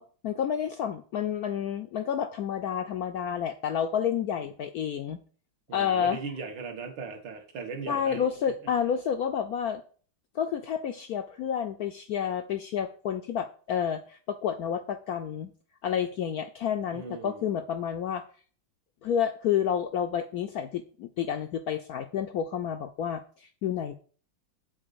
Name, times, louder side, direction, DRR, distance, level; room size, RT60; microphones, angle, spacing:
voice 1, 0.0-5.2 5.7-6.2 7.9-9.8 10.3-15.5 15.8-18.2 19.0-23.9, left 8 dB, 70° left, 8 dB, 0.9 m, -30 dB
voice 2, 5.7-8.7 16.9-17.6, right 4 dB, 70° right, 5 dB, 2.0 m, -39 dB
7.8 x 4.1 x 6.8 m, 0.42 s
omnidirectional pair, 2.1 m